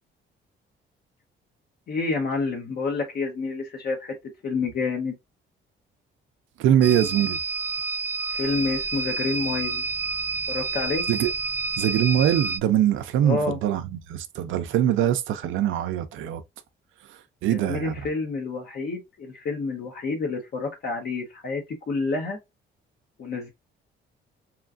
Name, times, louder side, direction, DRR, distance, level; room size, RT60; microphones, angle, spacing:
voice 1, 1.9-4.1 4.4-5.2 8.4-9.8 10.5-11.0 13.2-13.6 17.5-22.4 23.2-23.5, left 4 dB, 55° left, 0.8 m, -28 dB
voice 2, 6.6-7.4 11.1-11.3 11.8-16.4 17.4-18.0, right 10 dB, 85° right, 0.5 m, -23 dB
sound 1, 6.8-12.6, right 4 dB, 10° right, 0.6 m, -29 dB
3.0 x 2.4 x 2.4 m
cardioid pair, 90°, 20 cm